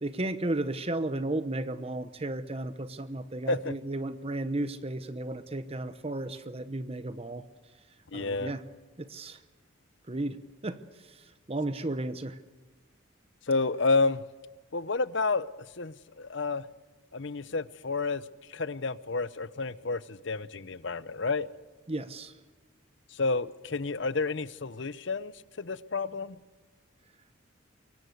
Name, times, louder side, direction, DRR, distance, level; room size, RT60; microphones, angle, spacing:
voice 1, 0.0-7.4 8.1-8.6 9.0-9.4 10.1-10.4 10.6-12.4 21.9-22.4, right 2 dB, 30° right, 11 dB, 0.9 m, -34 dB
voice 2, 8.1-8.5 13.5-14.2 14.7-15.5 15.8-16.7 17.1-21.5 23.1-26.4, left 3 dB, 60° left, 16 dB, 0.8 m, -30 dB
24.5 x 23.0 x 8.0 m, 1.3 s
head